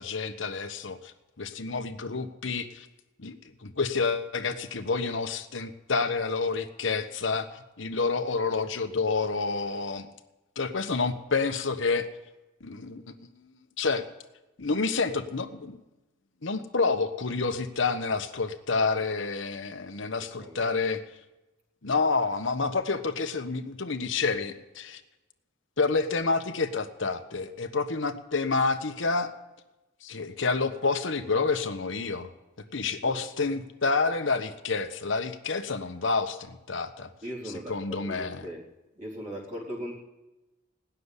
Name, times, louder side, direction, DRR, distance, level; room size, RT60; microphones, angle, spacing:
voice 1, 0.0-2.9 3.2-3.4 3.6-10.1 10.6-12.1 12.6-14.0 14.6-15.8 16.4-21.0 21.8-25.0 25.8-29.3 30.0-32.3 32.7-37.1 37.7-38.5, left 4 dB, 70° left, 7 dB, 1.1 m, -29 dB
voice 2, 20.2-20.7 32.8-33.2 37.2-38.6 39.0-40.0, equal, 35° right, -4 dB, 3.8 m, -39 dB
18.5 x 6.9 x 9.8 m, 1.0 s
head